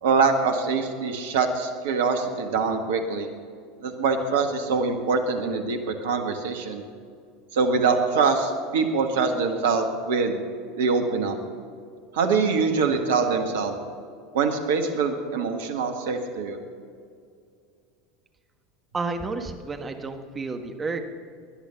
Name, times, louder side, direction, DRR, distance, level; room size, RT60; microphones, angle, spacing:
voice 1, 0.0-3.3 3.8-6.8 7.5-10.4 10.8-11.4 12.1-13.7 14.3-16.6, right 4 dB, 70° right, 6 dB, 1.7 m, -24 dB
voice 2, 18.9-21.0, right 3 dB, 20° right, 6 dB, 1.6 m, -31 dB
18.0 x 10.5 x 5.9 m, 2.3 s
figure-of-eight pair, 80°, 0 cm